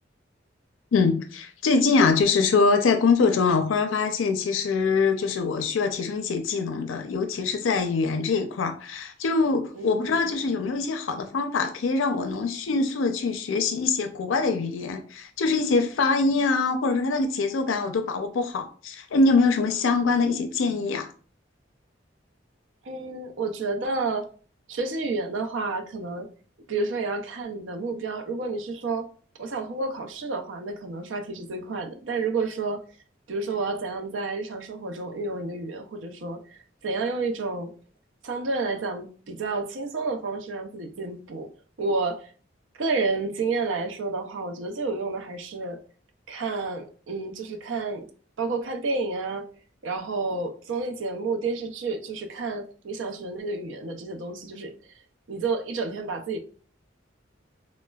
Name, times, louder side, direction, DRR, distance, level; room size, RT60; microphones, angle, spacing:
voice 1, 0.9-21.1, left 4 dB, 85° left, 0.4 m, -24 dB
voice 2, 9.8-10.3 22.8-24.3 24.7-26.3 26.7-29.1 29.4-32.8 33.3-37.7 38.2-41.5 41.8-42.3 42.8-45.8 46.3-48.0 48.4-49.5 49.8-54.7 55.3-56.4, right 3 dB, 80° right, 0.5 m, -30 dB
4.0 x 2.1 x 2.2 m
head